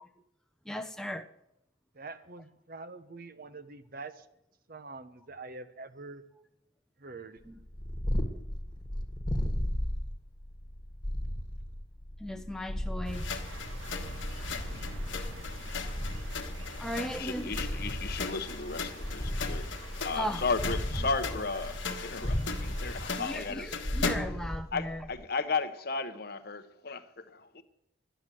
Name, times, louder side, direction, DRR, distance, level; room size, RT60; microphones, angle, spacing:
voice 1, 0.7-1.3 7.5-7.6 12.2-13.3 16.8-17.6 20.2-20.4 23.2-25.0, equal, 5° left, 0.7 m, -36 dB
voice 2, 1.9-4.2 4.7-6.2 7.0-7.4, right 3 dB, 45° right, 0.8 m, -45 dB
Purr, 7.5-25.2, equal, 20° left, 1.4 m, -36 dB
sound 1, 13.0-23.2, right 1 dB, 85° right, 1.6 m, -44 dB
sound 2, 13.1-24.5, left 5 dB, 65° left, 1.4 m, -39 dB
voice 3, 17.1-19.6 20.0-24.0 24.7-27.6, left 4 dB, 50° left, 0.9 m, -35 dB
11.0 x 10.0 x 7.6 m
head